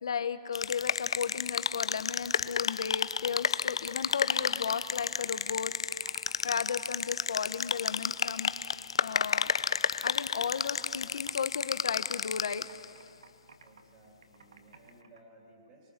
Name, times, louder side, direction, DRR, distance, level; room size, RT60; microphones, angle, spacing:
voice 1, 0.0-5.9 6.4-8.5 9.0-9.5 10.0-12.6, left 7 dB, 70° left, 11 dB, 1.2 m, -35 dB
sound 1, 0.5-12.8, left 6 dB, 90° left, 0.6 m, -32 dB
Computer keyboard, 3.1-6.6 6.9-8.1 8.5-9.8 10.0-15.2, right 5 dB, 80° right, 2.0 m, -55 dB
voice 2, 13.6-15.9, right 2 dB, 20° right, -2 dB, 2.8 m, -58 dB
28.5 x 24.5 x 6.8 m, 2.3 s
hypercardioid pair, 175°, 3 cm